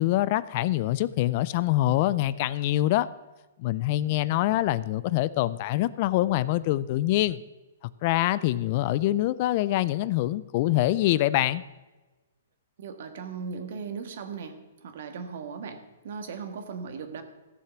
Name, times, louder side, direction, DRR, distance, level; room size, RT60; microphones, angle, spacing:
voice 1, 0.0-3.1 3.6-7.4 8.0-11.6, left 15 dB, 35° left, 18 dB, 0.3 m, -25 dB
voice 2, 12.8-14.5 14.8-17.2, right 5 dB, 55° right, 8 dB, 1.6 m, -37 dB
15.0 x 6.7 x 6.0 m, 1.1 s
hypercardioid pair, 160°, 0 cm